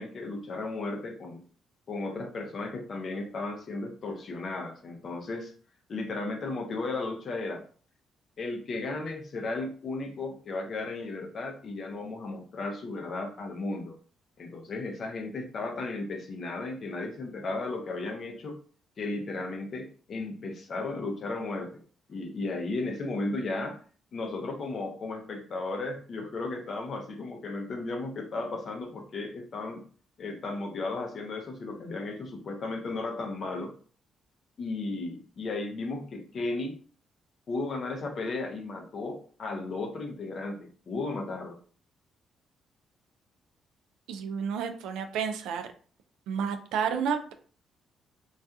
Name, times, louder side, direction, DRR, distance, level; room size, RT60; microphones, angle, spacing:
voice 1, 0.0-1.4 1.9-5.5 5.9-7.6 8.4-14.0 14.4-18.6 19.0-21.8 22.1-23.8 24.1-29.8 30.2-33.7 34.6-36.8 37.5-41.6, left 3 dB, 50° left, 4 dB, 0.5 m, -35 dB
voice 2, 44.1-45.7 46.3-47.3, right 6 dB, 90° right, 7 dB, 0.3 m, -31 dB
2.6 x 2.3 x 2.3 m, 0.43 s
cardioid pair, 90°, 0 cm